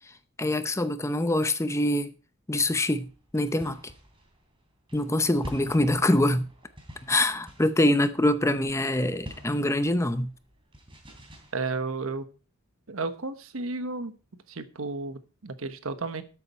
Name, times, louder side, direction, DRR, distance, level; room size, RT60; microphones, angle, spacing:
voice 1, 0.4-2.1 2.5-3.8 4.9-6.5 7.1-10.3, left 1 dB, 15° left, 0.6 m, -24 dB
sound 1, 2.5-11.5, equal, 25° right, 3.1 m, -48 dB
voice 2, 11.5-12.3 12.9-14.2 14.5-16.2, right 3 dB, 75° right, 1.1 m, -33 dB
13.0 x 8.4 x 4.3 m
head